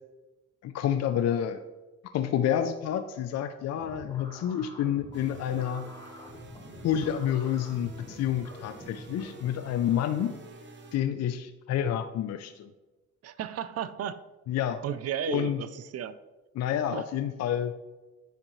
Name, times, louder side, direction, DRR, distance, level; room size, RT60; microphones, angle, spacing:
voice 1, 0.6-1.6 2.1-5.9 6.8-10.3 10.9-12.7 14.5-14.8 15.3-15.6 16.6-17.7, left 10 dB, 60° left, 9 dB, 0.4 m, -29 dB
sound 1, 3.7-10.5, left 1 dB, 15° left, 1.4 m, -47 dB
sound 2, 5.1-11.0, right 3 dB, 40° right, 0.9 m, -49 dB
voice 2, 13.2-14.2 14.8-16.2 16.9-17.1, right 9 dB, 55° right, 14 dB, 0.5 m, -34 dB
9.8 x 3.9 x 3.0 m, 1.1 s
cardioid pair, 90°, 30 cm